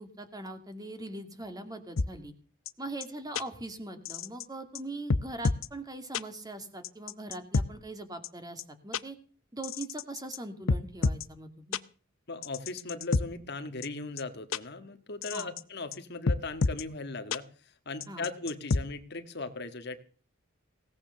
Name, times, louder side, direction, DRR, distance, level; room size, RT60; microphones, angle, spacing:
voice 1, 0.0-2.3 2.8-9.2 9.5-11.8 15.3-15.5 18.1-18.3, right 2 dB, 20° right, 7 dB, 2.3 m, -41 dB
sound 1, 2.0-2.1 2.7-2.8 3.0-3.1 3.3-3.4 4.0-4.4 4.7-4.8 5.1-5.7 6.1-6.2 6.8-7.7 8.2-8.3 8.6-8.7 8.9-9.0 9.6-10.4 10.7-11.2 11.7-11.8 12.4-13.2 13.8-13.9 14.2-14.3 14.5-14.6 15.2-15.6 15.9-16.0 16.3-16.8 17.3-17.4 18.0-18.8, left 3 dB, 70° left, 0.7 m, -28 dB
voice 2, 12.3-20.0, left 3 dB, 55° left, 8 dB, 1.7 m, -38 dB
17.5 x 9.2 x 6.9 m, 0.41 s
head